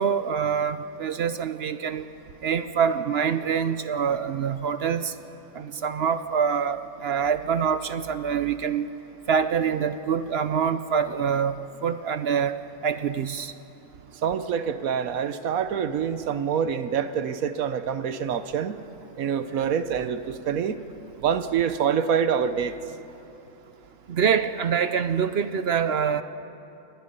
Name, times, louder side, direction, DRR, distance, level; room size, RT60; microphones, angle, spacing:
voice 1, 0.0-2.1 2.4-5.1 5.6-8.9 9.3-11.6 11.8-12.5 12.8-13.5 24.1-26.2, right 7 dB, 60° right, 11 dB, 0.7 m, -25 dB
voice 2, 14.2-18.8 19.2-20.8 21.2-22.8, right 7 dB, 75° right, 11 dB, 1.2 m, -26 dB
27.5 x 20.0 x 5.4 m, 2.9 s
omnidirectional pair, 1.5 m